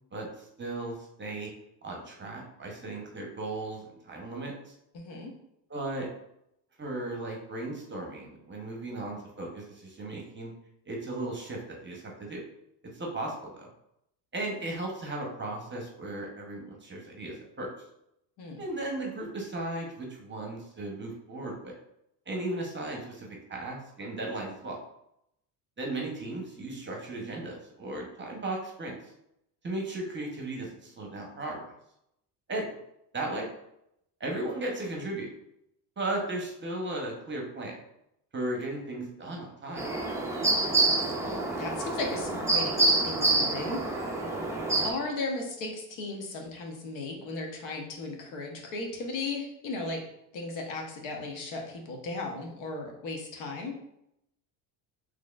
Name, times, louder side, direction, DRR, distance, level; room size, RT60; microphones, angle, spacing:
voice 1, 0.1-1.5 1.8-4.7 5.7-6.1 6.8-10.5 10.9-12.4 12.9-13.7 14.3-17.7 18.6-21.7 22.3-24.8 25.8-29.0 29.6-31.6 32.5-32.6 33.1-33.5 34.2-35.3 36.0-37.8 38.3-39.8, right 2 dB, 25° right, 0 dB, 0.8 m, -36 dB
voice 2, 4.9-5.3 18.4-18.6 41.2-44.4 44.8-50.0 50.3-53.7, left 3 dB, 65° left, 1 dB, 1.0 m, -36 dB
sound 1, 39.8-44.9, right 2 dB, 5° right, 0.3 m, -27 dB
4.0 x 3.1 x 2.4 m, 0.79 s
cardioid pair, 105°, 49 cm